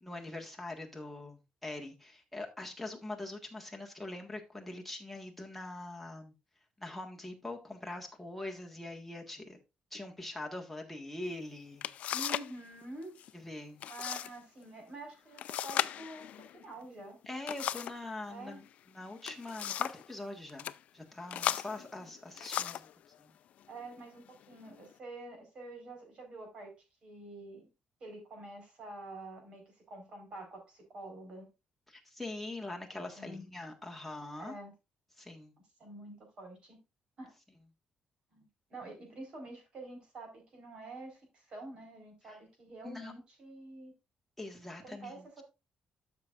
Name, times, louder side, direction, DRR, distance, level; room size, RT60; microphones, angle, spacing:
voice 1, 0.0-6.3 6.8-9.6 9.9-11.9 13.3-13.8 17.3-22.9 23.2-23.3 31.9-34.6 35.2-35.5 42.8-43.1 44.4-45.4, left 2 dB, 5° left, 1.6 m, -43 dB
sound 1, 11.3-11.4 11.8-12.6 12.8-13.3 13.8-14.3 14.6-14.7 15.4-18.0 19.0-20.1 20.5-20.8 21.3-22.9 23.7-23.9 24.4-24.9, left 11 dB, 60° left, 0.4 m, -36 dB
voice 2, 12.1-13.2 13.9-17.2 18.3-18.6 23.7-26.7 27.0-27.7 28.0-31.5 33.1-33.5 34.4-34.7 35.8-36.8 37.2-37.3 38.3-43.9 44.8-45.4, right 2 dB, 40° right, 4.4 m, -47 dB
13.0 x 6.1 x 2.5 m
cardioid pair, 165°, 3 cm